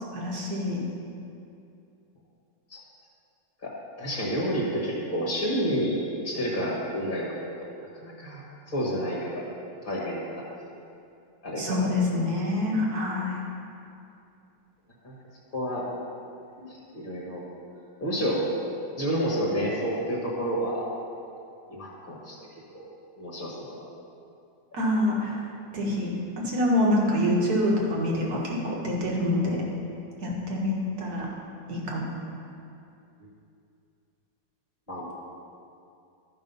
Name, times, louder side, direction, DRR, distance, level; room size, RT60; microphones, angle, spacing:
voice 1, 0.1-0.8 11.6-13.4 16.6-16.7 24.7-25.4 25.7-29.6 30.2-31.3 31.7-32.1, left 1 dB, 60° right, -3 dB, 2.0 m, -26 dB
voice 2, 4.0-7.7 8.0-8.4 8.7-9.5 9.8-10.3 11.4-12.1 15.0-15.1 15.5-15.8 16.9-17.4 18.0-18.4 19.0-20.9 21.7-22.4 22.7-22.9 23.2-23.8 34.9-35.1, equal, 30° left, -5 dB, 1.5 m, -29 dB
13.0 x 5.4 x 5.5 m, 2.6 s
omnidirectional pair, 1.9 m